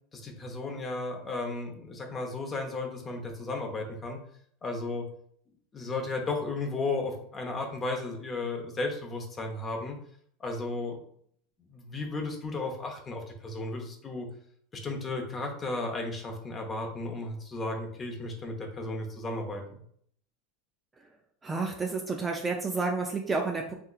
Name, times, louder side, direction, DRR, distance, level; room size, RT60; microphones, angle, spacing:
voice 1, 0.1-4.2 4.6-5.1 5.7-10.0 10.4-11.0 11.7-14.3 14.7-19.8, left 2 dB, 20° left, 2 dB, 0.7 m, -34 dB
voice 2, 21.4-23.7, right 4 dB, 15° right, 1 dB, 0.3 m, -30 dB
3.5 x 2.8 x 2.4 m, 0.64 s
supercardioid pair, 140°, 0 cm